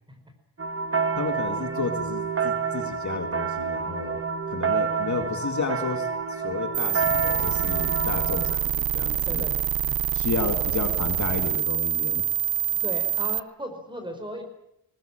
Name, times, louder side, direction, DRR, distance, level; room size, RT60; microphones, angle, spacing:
sound 1, 0.6-8.5, right 5 dB, 35° right, 1.6 m, -28 dB
voice 1, 1.1-4.2 4.5-9.5 10.1-12.2, left 5 dB, 45° left, 5 dB, 2.3 m, -32 dB
sound 2, 6.7-13.4, right 10 dB, 60° right, 0.8 m, -26 dB
voice 2, 9.0-9.6 9.8-10.0 10.5-10.6 12.8-14.4, equal, 10° right, 5 dB, 5.0 m, -37 dB
21.0 x 19.5 x 9.0 m, 0.80 s
wide cardioid pair, 135°, 40 cm